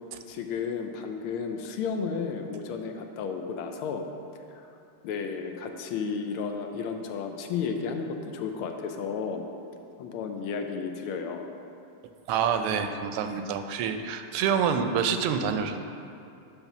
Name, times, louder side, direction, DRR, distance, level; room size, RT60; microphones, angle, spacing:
voice 1, 0.3-4.0 4.5-4.8 5.0-9.5 10.0-11.5 13.2-13.4, left 5 dB, 80° left, 5 dB, 1.5 m, -33 dB
voice 2, 12.3-15.8, right 7 dB, 80° right, 7 dB, 1.5 m, -27 dB
9.9 x 3.6 x 5.9 m, 2.6 s
omnidirectional pair, 2.4 m